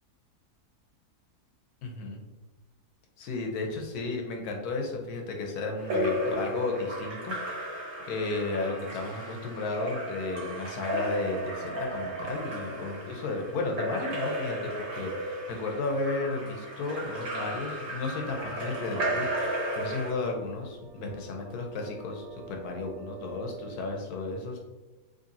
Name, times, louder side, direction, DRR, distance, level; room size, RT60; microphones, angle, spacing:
voice 1, 1.8-2.2 3.2-7.3 8.1-24.6, left 3 dB, 80° left, 2 dB, 1.2 m, -33 dB
Splash splatter / Drip / Trickle dribble, 5.8-20.1, equal, 65° right, 1.7 m, -34 dB
sound 1, 18.1-23.8, right 5 dB, 15° left, 0.8 m, -46 dB
3.9 x 3.1 x 2.7 m, 1.2 s
omnidirectional pair, 1.6 m